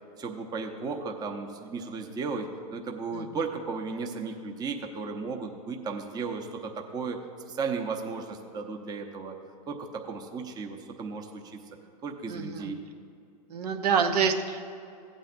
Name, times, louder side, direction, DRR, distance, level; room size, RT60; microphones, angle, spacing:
voice 1, 0.2-7.2 7.5-9.3 9.7-11.6 12.0-12.8, right 4 dB, 20° right, 3 dB, 0.8 m, -35 dB
voice 2, 12.3-12.7 13.5-14.6, right 6 dB, 75° right, 5 dB, 0.9 m, -27 dB
16.0 x 8.9 x 2.6 m, 2.6 s
hypercardioid pair, 125°, 21 cm